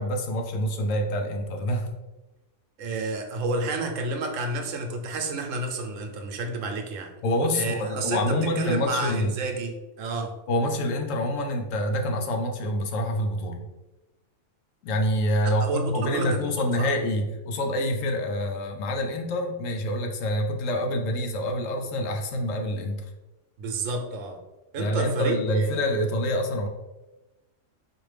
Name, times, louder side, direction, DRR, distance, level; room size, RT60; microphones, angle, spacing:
voice 1, 0.0-1.9 7.2-9.3 10.5-13.6 14.8-23.0 24.8-26.7, equal, 90° left, 3 dB, 1.0 m, -26 dB
voice 2, 2.8-7.1 7.5-10.3 15.4-16.5 16.8-16.9 23.6-24.4 24.7-25.9, right 3 dB, 85° right, 3 dB, 1.0 m, -30 dB
4.2 x 2.5 x 3.2 m, 1.1 s
omnidirectional pair, 1.3 m